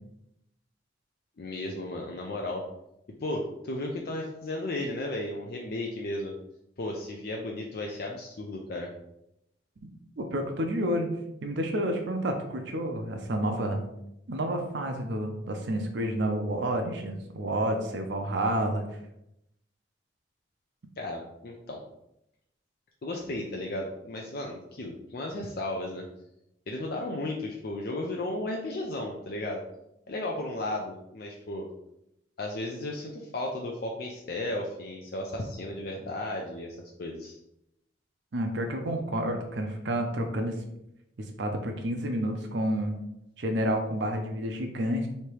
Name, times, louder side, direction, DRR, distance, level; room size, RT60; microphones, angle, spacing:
voice 1, 1.4-2.7 3.2-6.3 6.8-8.9 21.0-21.8 23.0-26.0 26.7-29.6 30.1-31.7 32.4-37.4, left 1 dB, 55° left, 0 dB, 0.5 m, -34 dB
voice 2, 10.2-11.1 11.4-13.8 14.3-18.8 38.3-40.6 41.4-42.9 43.4-45.1, right 1 dB, 70° right, 4 dB, 0.6 m, -29 dB
3.3 x 2.9 x 4.6 m, 0.82 s
head